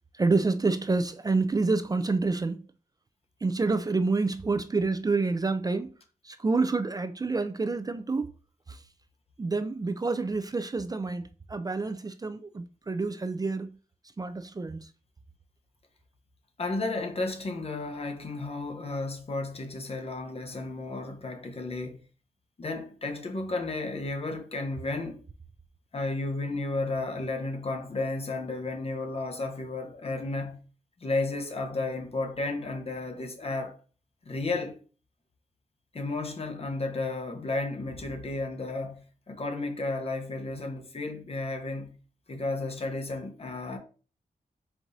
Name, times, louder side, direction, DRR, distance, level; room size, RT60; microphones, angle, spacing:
voice 1, 0.2-2.7 3.4-5.9 6.2-8.3 9.4-13.8 14.2-14.9, right 3 dB, 25° right, 0.4 m, -28 dB
voice 2, 16.6-22.0 22.6-25.2 25.9-30.6 31.0-33.8 34.2-34.8 35.9-42.0 42.3-43.8, left 2 dB, 40° left, 0.9 m, -33 dB
4.5 x 2.5 x 4.0 m
wide cardioid pair, 95°, 15 cm